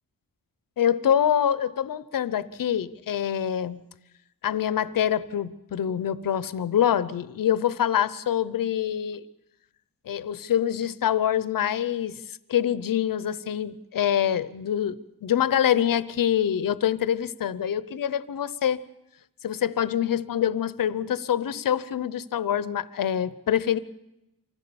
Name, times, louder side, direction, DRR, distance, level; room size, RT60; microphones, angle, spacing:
voice 1, 0.8-3.8 4.4-9.2 10.1-12.2 12.5-18.8 19.4-23.8, left 9 dB, 65° left, 17 dB, 0.8 m, -25 dB
25.0 x 16.0 x 7.0 m, 0.90 s
wide cardioid pair, 140°, 36 cm